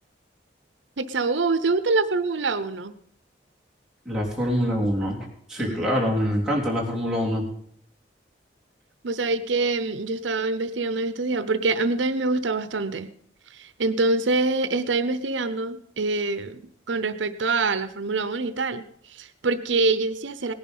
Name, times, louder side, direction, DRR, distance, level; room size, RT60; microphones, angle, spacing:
voice 1, 1.0-3.0 5.6-6.1 9.0-13.1 13.5-16.6 16.9-20.5, right 3 dB, 85° right, 13 dB, 0.8 m, -25 dB
voice 2, 4.1-5.2 5.5-7.4, equal, 5° right, -5 dB, 3.5 m, -25 dB
18.0 x 11.0 x 5.5 m, 0.65 s
head